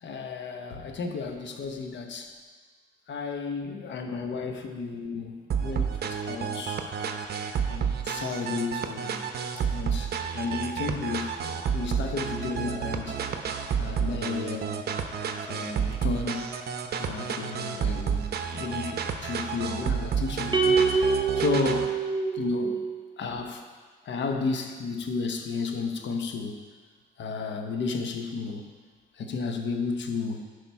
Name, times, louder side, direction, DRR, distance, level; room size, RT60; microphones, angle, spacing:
voice 1, 0.0-2.3 3.1-6.9 7.7-9.3 9.6-13.2 13.8-14.8 15.5-16.5 17.0-21.1 21.4-22.0 22.3-22.8 23.2-23.6 24.0-26.6 27.2-28.6 29.2-30.4, left 4 dB, 65° left, 4 dB, 1.1 m, -33 dB
sound 1, 5.5-21.9, right 7 dB, 55° right, 0.7 m, -30 dB
sound 2, 20.5-23.0, right 5 dB, 25° right, 0.8 m, -25 dB
11.0 x 4.9 x 4.7 m, 1.5 s
cardioid pair, 90°, 20 cm